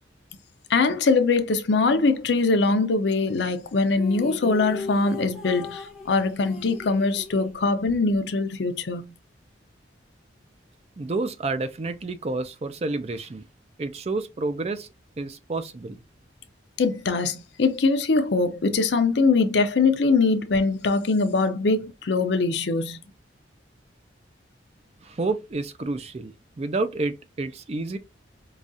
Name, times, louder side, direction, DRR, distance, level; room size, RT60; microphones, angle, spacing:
voice 1, 0.7-9.0 16.8-23.0, left 3 dB, 70° left, 0.6 m, -22 dB
sound 1, 3.9-8.2, left 4 dB, 5° right, 0.8 m, -38 dB
voice 2, 11.0-13.4 13.8-14.9 15.2-16.0 25.0-28.0, right 3 dB, 35° right, 0.4 m, -29 dB
4.8 x 2.3 x 2.6 m
head